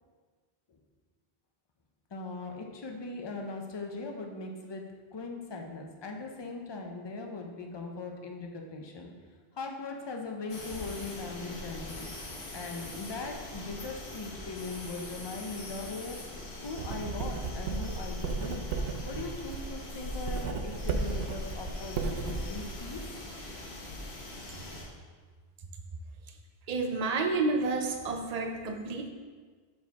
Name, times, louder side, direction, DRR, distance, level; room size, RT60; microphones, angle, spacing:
voice 1, 2.1-9.2 9.5-12.1 12.5-18.7 19.0-23.0, left 3 dB, 30° left, 2 dB, 0.6 m, -40 dB
sound 1, 10.5-24.8, left 2 dB, 85° left, 1.3 m, -42 dB
Writing, 16.7-22.8, right 4 dB, 75° right, 0.8 m, -35 dB
voice 2, 26.7-29.1, right 3 dB, 45° right, 4 dB, 0.6 m, -30 dB
6.3 x 4.8 x 3.5 m, 1.5 s
omnidirectional pair, 1.0 m